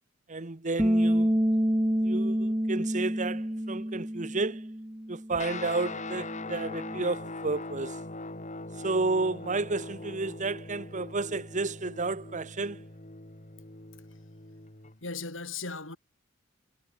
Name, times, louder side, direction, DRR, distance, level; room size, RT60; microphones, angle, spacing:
voice 1, 0.3-1.4 2.0-4.7 5.1-8.0 8.8-12.9, right 3 dB, 40° right, 1.2 m, -31 dB
Bass guitar, 0.8-7.0, equal, 15° right, 1.8 m, -28 dB
Guitar, 5.4-15.0, left 2 dB, 40° left, 4.3 m, -41 dB
voice 2, 15.0-16.0, left 4 dB, 70° left, 7.5 m, -37 dB
head